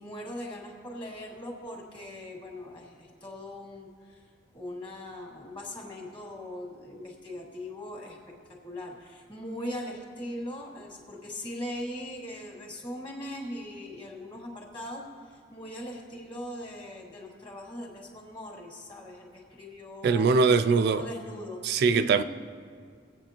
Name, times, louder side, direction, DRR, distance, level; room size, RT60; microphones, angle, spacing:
voice 1, 0.0-4.2 4.5-8.2 8.6-20.3 20.6-21.6 21.9-22.2, left 1 dB, 30° left, 2.0 m, -40 dB
voice 2, 20.0-21.1 21.6-22.2, right 4 dB, 60° right, 0.3 m, -22 dB
21.0 x 8.4 x 2.9 m
head